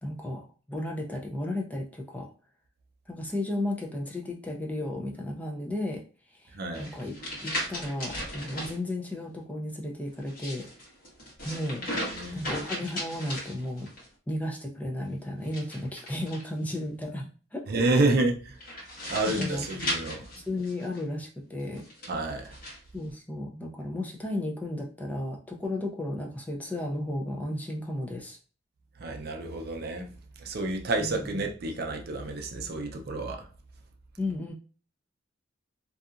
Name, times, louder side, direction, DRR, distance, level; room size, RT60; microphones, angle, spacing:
voice 1, 0.0-2.3 3.1-6.0 6.3-7.1 7.4-10.7 11.4-11.9 12.3-13.9 14.3-17.7 19.2-19.6 20.4-21.8 22.9-28.4 31.0-31.2 34.2-34.5, left 1 dB, 10° left, 0 dB, 0.3 m, -34 dB
voice 2, 6.5-6.9 12.1-12.4 17.7-18.6 19.1-20.3 22.1-22.5 29.0-30.1 30.4-33.5, right 2 dB, 55° right, 3 dB, 0.5 m, -29 dB
sound 1, 6.7-8.7 10.2-14.1 15.4-16.8 18.6-21.0 21.8-22.8, left 1 dB, 50° left, 1.2 m, -36 dB
2.7 x 2.3 x 2.4 m, 0.38 s
head